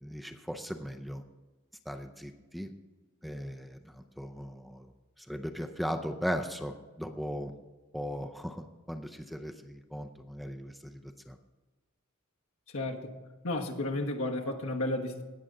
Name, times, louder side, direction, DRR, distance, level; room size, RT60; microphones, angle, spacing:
voice 1, 0.0-1.2 1.9-2.7 3.2-4.9 5.3-7.5 7.9-11.0 11.3-11.4, equal, ahead, 5 dB, 0.5 m, -38 dB
voice 2, 12.7-13.1 13.4-15.2, left 1 dB, 70° left, 2 dB, 1.4 m, -32 dB
18.5 x 6.7 x 3.8 m, 1.2 s
head